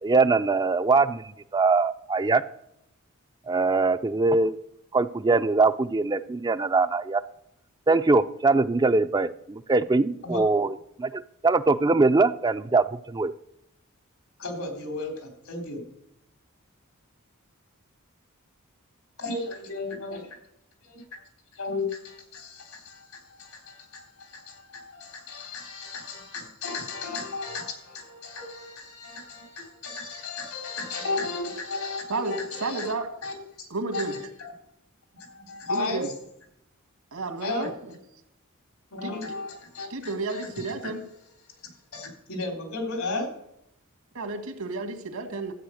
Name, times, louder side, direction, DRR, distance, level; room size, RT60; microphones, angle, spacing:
voice 1, 0.0-1.2 1.5-2.4 3.5-4.6 4.9-7.2 7.9-10.7 11.0-13.3, right 3 dB, 20° right, 12 dB, 0.4 m, -22 dB
voice 2, 14.4-15.8 19.2-20.4 20.8-21.2 21.5-32.9 33.2-34.5 35.1-36.0 37.4-37.7 38.9-40.9 41.9-43.3, left 3 dB, 85° left, 3 dB, 3.5 m, -35 dB
voice 3, 32.1-33.1 33.7-34.2 35.7-36.1 37.1-37.7 39.0-39.1 39.9-41.0 44.1-45.5, right 3 dB, 80° right, 5 dB, 2.1 m, -31 dB
13.5 x 8.6 x 6.3 m, 0.80 s
head